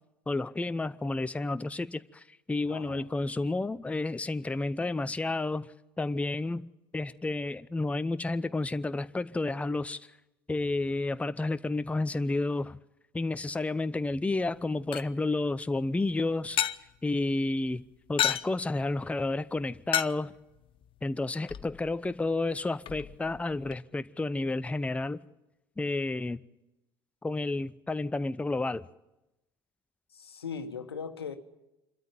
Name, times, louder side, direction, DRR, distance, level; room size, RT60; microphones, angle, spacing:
voice 1, 0.3-5.7 6.0-6.7 6.9-10.0 10.5-12.8 13.1-16.6 17.0-17.8 18.1-20.3 21.0-25.2 25.8-26.4 27.2-28.8, left 2 dB, 10° left, 0.7 m, -31 dB
voice 2, 2.7-3.1 30.1-31.4, left 6 dB, 85° left, 1.4 m, -39 dB
sound 1, 14.4-23.8, left 11 dB, 45° left, 0.9 m, -36 dB
26.0 x 13.0 x 9.5 m
hypercardioid pair, 65°, 13 cm